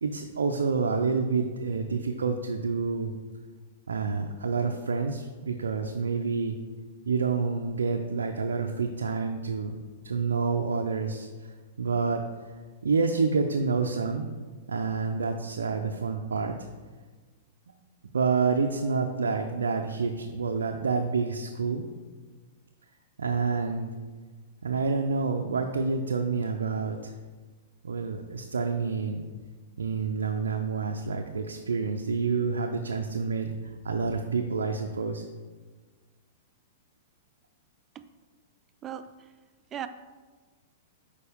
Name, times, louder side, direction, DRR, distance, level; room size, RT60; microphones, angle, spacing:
voice 1, 0.0-3.1 3.9-6.6 7.1-9.8 10.0-12.5 12.8-14.3 14.7-16.7 18.1-21.9 23.2-23.9 24.6-27.1 27.8-29.2 29.8-33.5 33.8-35.2, right 4 dB, 85° right, 4 dB, 0.4 m, -28 dB
voice 2, 38.8-39.3 39.7-39.9, right 10 dB, 25° right, 10 dB, 0.4 m, -37 dB
6.7 x 4.8 x 3.5 m, 1.4 s
hypercardioid pair, 115°, 0 cm